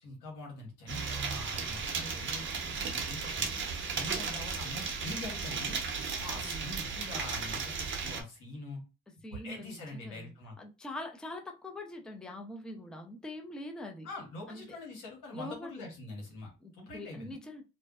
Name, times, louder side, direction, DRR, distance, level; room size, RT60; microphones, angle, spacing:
voice 1, 0.0-3.5 3.9-5.8 6.2-8.8 9.3-10.6 14.0-17.3, left 2 dB, 90° left, 1.2 m, -44 dB
sound 1, 0.9-8.2, right 5 dB, 40° right, 0.7 m, -35 dB
voice 2, 4.1-4.5 6.3-6.6 9.2-14.1 14.5-14.6 15.3-15.9 16.6-17.6, left 1 dB, 5° left, 0.4 m, -44 dB
2.5 x 2.1 x 2.3 m
cardioid pair, 90°, 30 cm